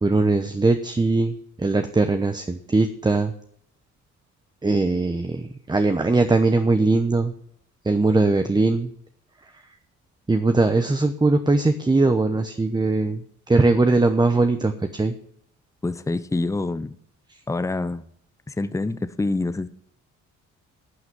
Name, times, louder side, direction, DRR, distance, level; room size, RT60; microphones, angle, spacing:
voice 1, 0.0-3.3 4.6-7.3 7.8-8.9 10.3-15.1, right 3 dB, 15° right, 7 dB, 0.9 m, -20 dB
voice 2, 15.8-17.0 17.5-18.0 18.5-19.7, left 2 dB, 10° left, 13 dB, 0.7 m, -26 dB
11.5 x 6.0 x 9.3 m, 0.67 s
cardioid pair, 90°, 30 cm